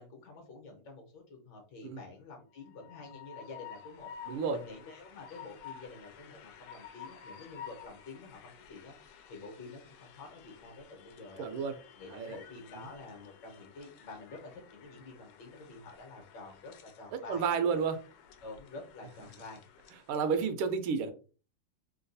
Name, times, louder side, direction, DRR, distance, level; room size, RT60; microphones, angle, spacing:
voice 1, 0.0-11.5 11.9-17.4 18.4-19.6 20.2-20.4, left 3 dB, 65° left, 3 dB, 1.4 m, -49 dB
Train, 2.6-20.4, left 8 dB, 85° left, 1.5 m, -52 dB
voice 2, 4.3-4.6 11.4-11.8 12.1-12.4 17.3-18.0 20.1-21.1, right 6 dB, 80° right, 8 dB, 1.5 m, -31 dB
3.8 x 2.3 x 2.6 m, 0.35 s
omnidirectional pair, 2.4 m